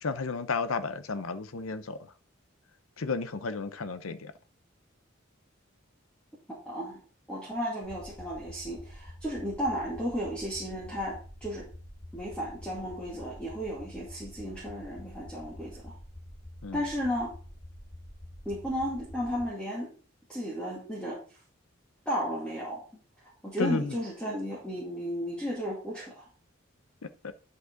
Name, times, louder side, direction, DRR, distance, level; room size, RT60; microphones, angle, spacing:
voice 1, 0.0-2.1 3.0-4.3 16.6-16.8 23.6-23.9 27.0-27.3, left 4 dB, 85° left, 0.8 m, -33 dB
voice 2, 6.7-7.0 7.3-11.7 12.1-16.0 16.7-17.3 18.5-19.9 20.3-21.2 22.1-22.8 23.4-26.3, equal, 5° left, 2.3 m, -34 dB
sound 1, 7.8-19.4, left 1 dB, 45° left, 5.2 m, -47 dB
10.5 x 5.5 x 3.9 m
head